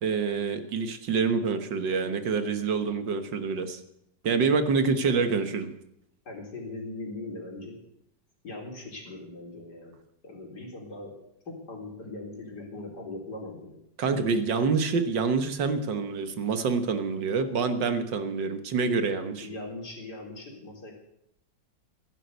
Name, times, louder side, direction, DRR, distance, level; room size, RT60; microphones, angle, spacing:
voice 1, 0.0-3.8 4.2-5.7 14.0-19.5, right 5 dB, 75° right, 9 dB, 2.0 m, -27 dB
voice 2, 4.8-5.2 6.2-7.8 8.4-9.9 10.2-11.1 11.5-13.8 19.4-20.9, left 2 dB, 60° left, 0 dB, 4.4 m, -40 dB
16.0 x 10.5 x 8.2 m, 0.77 s
omnidirectional pair, 2.0 m